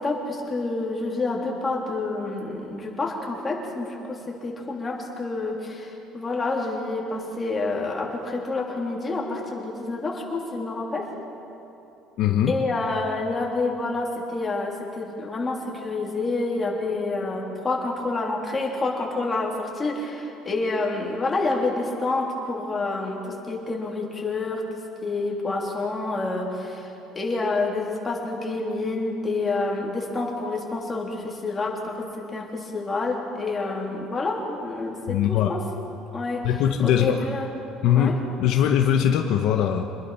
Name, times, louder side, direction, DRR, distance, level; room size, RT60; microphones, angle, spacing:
voice 1, 0.0-11.1 12.5-23.2 23.5-24.6 25.0-26.9 27.1-35.6 36.1-36.4 36.8-37.5 37.9-38.1, left 3 dB, 15° left, -2 dB, 3.3 m, -28 dB
voice 2, 12.2-12.5 35.1-35.5 36.4-37.3 37.8-39.8, left 9 dB, 60° left, 4 dB, 1.1 m, -21 dB
26.0 x 20.5 x 5.7 m, 2.8 s
cardioid pair, 160°, 0 cm